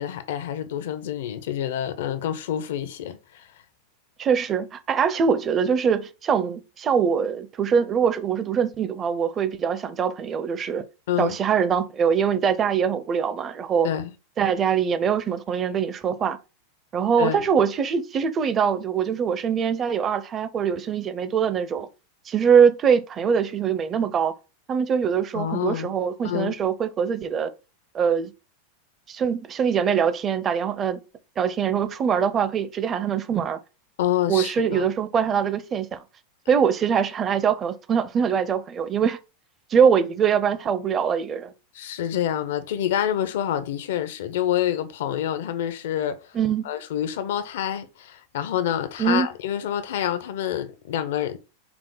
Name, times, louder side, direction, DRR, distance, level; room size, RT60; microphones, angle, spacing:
voice 1, 0.0-3.5 11.1-11.4 13.8-14.1 17.2-17.4 25.3-25.9 26.2-26.6 34.0-34.9 41.7-46.2 46.6-51.4, left 10 dB, 75° left, 0.6 m, -27 dB
voice 2, 4.2-10.8 11.2-13.9 14.4-16.4 16.9-21.9 22.3-24.3 24.7-27.5 27.9-28.3 29.1-31.0 31.4-33.6 34.3-36.0 36.5-39.2 39.7-41.5 46.3-46.6 49.0-49.3, right 7 dB, 30° right, 0.5 m, -23 dB
4.7 x 2.0 x 3.8 m
supercardioid pair, 125°, 0 cm